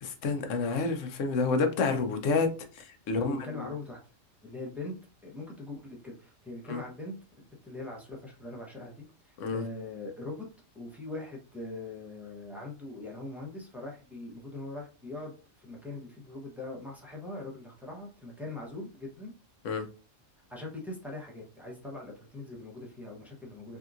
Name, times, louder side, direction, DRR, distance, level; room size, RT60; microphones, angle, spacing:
voice 1, 0.0-2.5 2.8-3.4 6.7-6.8 9.4-9.6 19.6-19.8, left 4 dB, 75° left, 6 dB, 1.0 m, -29 dB
voice 2, 3.2-4.0 4.4-4.9 5.2-7.1 7.6-10.5 10.7-19.3 20.5-23.8, left 2 dB, ahead, -2 dB, 0.6 m, -41 dB
3.5 x 2.7 x 2.4 m, 0.35 s
omnidirectional pair, 1.3 m